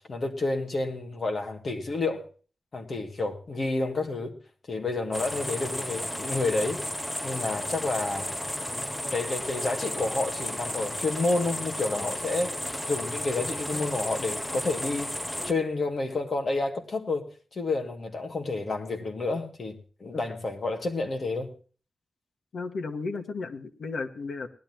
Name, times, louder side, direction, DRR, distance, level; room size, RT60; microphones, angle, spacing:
voice 1, 0.0-2.2 2.7-4.3 4.7-6.8 7.2-8.3 9.1-12.6 12.9-15.2 15.5-21.5, left 3 dB, 45° left, 2.2 m, -30 dB
sound 1, 5.1-15.5, equal, 5° left, 0.6 m, -33 dB
voice 2, 22.5-24.5, left 4 dB, 85° left, 1.5 m, -34 dB
19.0 x 11.5 x 3.0 m
wide cardioid pair, 145°, 0 cm